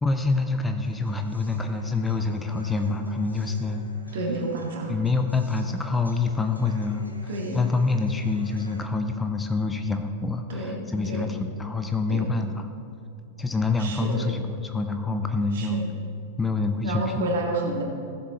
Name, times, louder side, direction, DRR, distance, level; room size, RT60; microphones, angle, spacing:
voice 1, 0.0-3.9 4.9-7.1 7.5-12.7 13.4-15.8 16.4-17.2, left 3 dB, 10° left, 7 dB, 0.6 m, -26 dB
sound 1, 0.8-8.8, right 2 dB, 90° right, 1.0 m, -47 dB
voice 2, 4.1-4.9 7.3-7.6 10.5-10.8 11.0-11.3 12.1-12.3 13.8-14.3 15.5-15.9 16.8-17.8, right 1 dB, 60° right, 1 dB, 1.9 m, -29 dB
15.0 x 7.4 x 4.2 m, 2.6 s
figure-of-eight pair, 90°, 0 cm